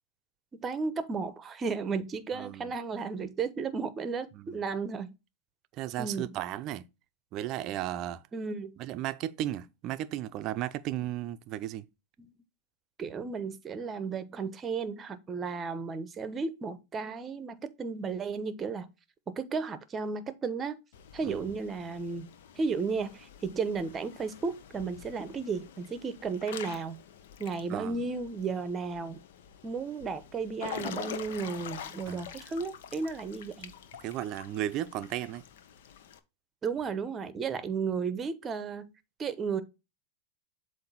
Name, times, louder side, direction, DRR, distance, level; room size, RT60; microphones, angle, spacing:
voice 1, 0.6-5.1 6.0-6.3 8.3-8.8 12.2-12.3 13.0-18.9 19.3-20.8 21.1-22.3 22.5-27.0 27.4-29.2 29.6-33.7 36.6-38.9 39.2-39.6, right 5 dB, 25° right, 0.9 m, -34 dB
voice 2, 2.3-2.7 4.3-4.6 5.7-6.9 7.3-8.2 8.8-11.9 21.2-21.5 27.7-28.0 32.1-32.3 34.0-35.4, right 13 dB, 45° right, 0.5 m, -35 dB
Water / Splash splatter / Drip, 20.9-36.2, left 8 dB, 70° left, 0.8 m, -46 dB
7.6 x 2.7 x 5.6 m
hypercardioid pair, 115°, 0 cm